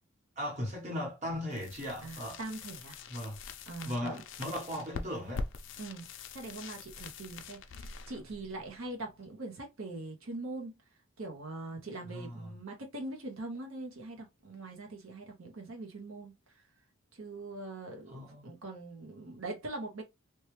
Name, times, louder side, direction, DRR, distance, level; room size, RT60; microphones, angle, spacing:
voice 1, 0.4-2.4 3.1-3.4 3.8-5.5 12.1-12.5 18.1-18.5, equal, 35° right, 1.1 m, -37 dB
sound 1, 1.5-9.3, left 4 dB, 60° left, 0.4 m, -44 dB
voice 2, 2.0-3.0 3.7-4.2 5.8-6.1 6.3-10.7 11.2-16.6 17.1-20.0, right 2 dB, 80° right, 0.7 m, -42 dB
3.0 x 2.2 x 3.0 m
head